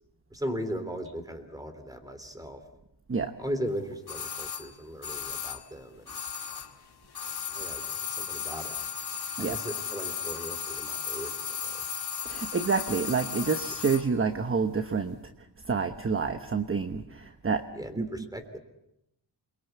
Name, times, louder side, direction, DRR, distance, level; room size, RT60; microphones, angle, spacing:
voice 1, 0.3-2.6 3.4-6.2 7.5-8.8 9.4-11.9 17.7-18.6, equal, 10° right, 8 dB, 3.4 m, -37 dB
sound 1, 4.1-6.8 7.1-14.1 14.4-14.5, left 7 dB, 60° left, 2.5 m, -35 dB
voice 2, 12.2-15.2 15.6-17.6 18.0-18.1, right 5 dB, 30° right, 8 dB, 1.2 m, -28 dB
28.5 x 22.5 x 8.2 m, 0.85 s
wide cardioid pair, 145°, 43 cm